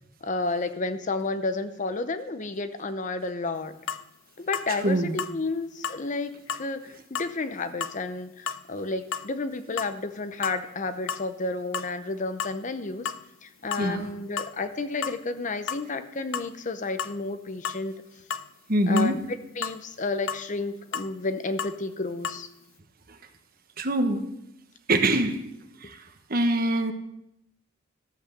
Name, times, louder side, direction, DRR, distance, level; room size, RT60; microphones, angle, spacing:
voice 1, 0.2-3.7 4.4-13.1 13.4-17.9 18.9-19.2 19.6-22.5, left 3 dB, 40° left, 10 dB, 0.7 m, -31 dB
sound 1, 3.9-4.0 4.5-4.7 5.2-5.4 5.8-6.0 6.5-6.7 7.2-7.3 7.8-8.0 8.5-8.6 9.1-9.3 9.8-10.0 10.3-10.8 11.1-11.3 11.7-11.9 12.4-12.6 13.1-13.2 13.7-13.9 14.4-14.6 15.0-15.2 15.7-15.8 16.3-16.5 17.0-17.2 17.6-17.8 18.3-18.5 19.0-19.2 19.6-19.8 20.3-20.5 20.9-21.1 21.6-21.8 22.2-22.4, left 7 dB, 75° left, 0.5 m, -33 dB
voice 2, 4.7-5.2 13.8-14.1 18.7-19.2 23.1-23.2 23.8-24.2 24.9-25.4 25.8-26.9, right 1 dB, 45° right, 7 dB, 1.2 m, -24 dB
13.5 x 8.0 x 6.6 m, 0.82 s
head